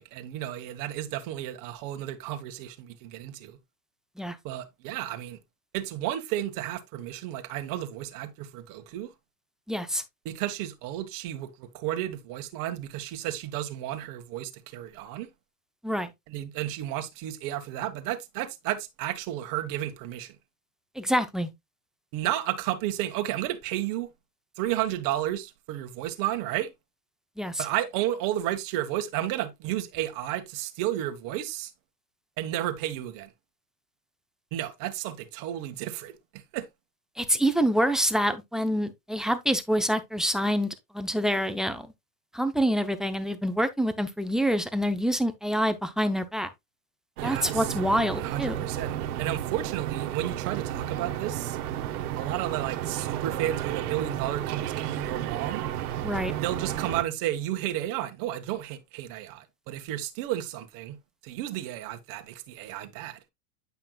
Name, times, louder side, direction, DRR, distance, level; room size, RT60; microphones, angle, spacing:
voice 1, 0.0-3.6 4.4-5.4 5.7-9.1 10.2-15.3 16.3-20.4 22.1-24.1 24.6-26.7 27.6-31.7 32.4-33.3 34.5-36.7 47.2-47.7 48.2-51.6 52.2-55.6 56.4-61.0 61.2-63.2, right 13 dB, 45° right, 1.4 m, -32 dB
voice 2, 9.7-10.0 15.8-16.1 21.0-21.5 27.4-27.7 37.2-41.9 42.3-46.5 47.2-48.6 56.0-56.3, equal, ahead, 0.5 m, -26 dB
sound 1, 47.2-57.0, right 11 dB, 70° right, 1.5 m, -32 dB
9.4 x 5.7 x 2.3 m
supercardioid pair, 130°, 46 cm